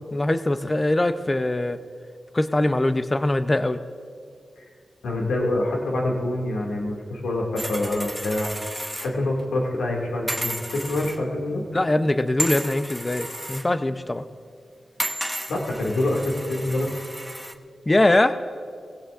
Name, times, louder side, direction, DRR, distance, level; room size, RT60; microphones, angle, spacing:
voice 1, 0.1-1.8 2.3-3.8 11.7-14.2 17.9-18.4, left 1 dB, 30° left, 10 dB, 0.7 m, -22 dB
voice 2, 5.0-8.5 9.0-11.6 15.5-16.9, left 1 dB, 90° left, -2 dB, 2.3 m, -26 dB
sound 1, 7.6-9.1 9.4-9.5 10.3-11.2 12.4-13.7 15.0-17.5, right 1 dB, 5° right, 0.9 m, -32 dB
21.0 x 16.5 x 2.6 m, 2.2 s
cardioid pair, 50°, 0 cm